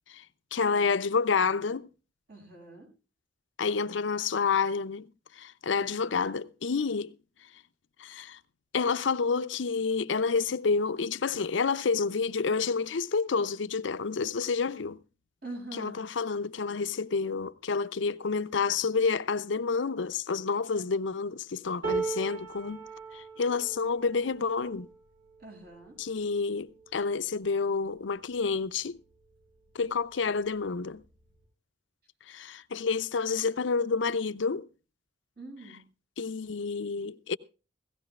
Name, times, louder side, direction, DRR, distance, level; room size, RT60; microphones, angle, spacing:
voice 1, 0.5-1.9 3.6-5.1 5.4-7.1 8.0-8.4 8.7-15.0 15.7-22.8 23.1-24.9 26.0-29.0 29.7-31.0 32.3-34.7 36.2-37.4, left 5 dB, 75° left, 0.6 m, -29 dB
voice 2, 2.3-2.9 5.8-6.2 15.4-16.0 25.4-26.0 35.4-35.8, right 2 dB, 55° right, 7.0 m, -44 dB
sound 1, 21.8-28.0 28.6-28.8 29.1-29.8 30.8-30.9, right 4 dB, 75° right, 7.6 m, -39 dB
17.0 x 17.0 x 2.3 m
head